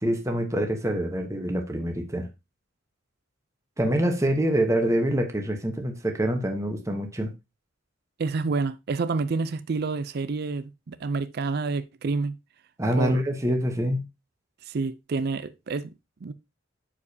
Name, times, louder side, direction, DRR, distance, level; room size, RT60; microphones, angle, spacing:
voice 1, 0.0-2.3 3.8-7.3 12.8-14.0, right 1 dB, 15° right, 1.0 m, -25 dB
voice 2, 8.2-12.4 13.0-13.2 14.7-15.9 16.2-16.3, right 4 dB, 50° right, 0.4 m, -28 dB
11.0 x 4.9 x 2.7 m
head